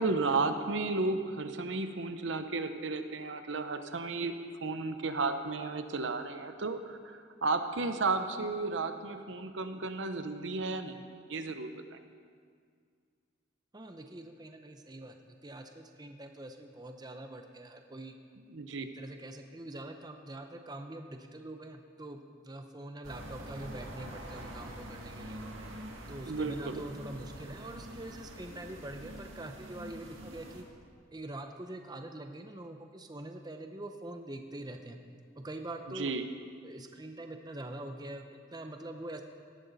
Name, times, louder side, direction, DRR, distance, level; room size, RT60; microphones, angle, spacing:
voice 1, 0.0-4.3 4.6-12.0 18.5-18.9 26.3-26.8 35.9-36.3, right 3 dB, 70° right, 8 dB, 0.8 m, -33 dB
voice 2, 13.7-18.1 18.8-25.4 26.1-30.6 31.1-35.0 35.4-36.1 36.6-39.2, right 1 dB, 20° right, 5 dB, 0.7 m, -44 dB
sound 1, 23.0-30.6, right 1 dB, 90° right, 2.0 m, -45 dB
17.0 x 13.0 x 4.1 m, 2.1 s
head